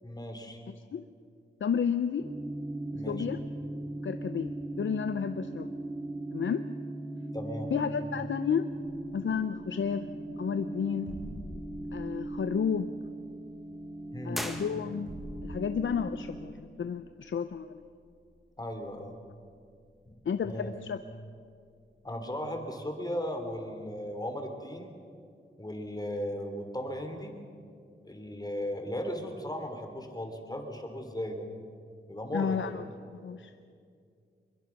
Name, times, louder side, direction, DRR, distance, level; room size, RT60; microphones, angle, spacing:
voice 1, 0.0-0.6 2.9-3.3 7.3-7.7 14.1-14.5 18.6-19.2 20.4-20.7 22.0-24.9 25.6-27.3 28.0-31.5 32.1-32.8, equal, 20° left, 4 dB, 3.3 m, -36 dB
voice 2, 0.7-1.0 1.6-2.3 3.1-3.4 4.0-5.7 6.3-6.6 7.7-8.7 9.1-10.0 10.4-11.1 11.9-12.9 14.2-15.1 15.4-17.8 20.3-21.0 32.3-32.8 33.2-33.5, left 7 dB, 70° left, 10 dB, 0.7 m, -31 dB
sound 1, 2.2-16.5, right 2 dB, 20° right, 3.2 m, -39 dB
sound 2, 9.4-22.0, right 1 dB, 70° right, 7.9 m, -50 dB
sound 3, 14.3-15.4, equal, ahead, 1.7 m, -39 dB
23.0 x 22.5 x 6.0 m, 2.3 s
wide cardioid pair, 85°, 20 cm